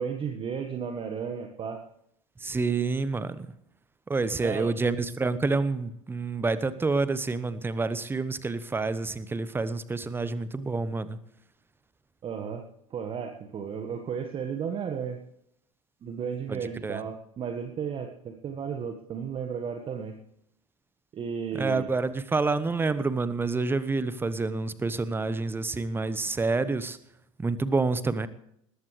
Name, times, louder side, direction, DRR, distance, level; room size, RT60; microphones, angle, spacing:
voice 1, 0.0-1.8 4.4-4.7 12.2-12.6 12.9-15.2 16.0-20.2 21.1-21.9, right 7 dB, 30° right, 5 dB, 1.6 m, -34 dB
voice 2, 2.4-3.5 4.1-11.2 16.5-17.0 21.5-27.0 27.4-28.3, right 3 dB, 10° right, 15 dB, 1.1 m, -28 dB
20.0 x 15.0 x 3.3 m, 0.73 s
figure-of-eight pair, 80°, 19 cm